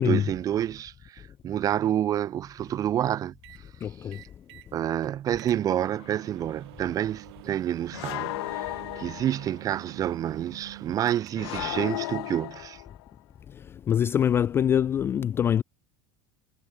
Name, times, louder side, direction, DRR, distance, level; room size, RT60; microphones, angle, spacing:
voice 1, 0.0-3.3 4.7-12.8, right 11 dB, 25° right, 1.1 m, -28 dB
sound 1, 3.4-3.7 4.1-4.7 5.0-5.1 5.4-11.7, right 21 dB, 75° right, 3.2 m, -46 dB
voice 2, 3.8-4.2 13.9-15.6, left 9 dB, 20° left, 0.3 m, -24 dB
sound 2, 6.0-6.2 7.9-9.6 11.4-13.1, left 21 dB, 80° left, 1.2 m, -35 dB
cardioid pair, 170°, 13 cm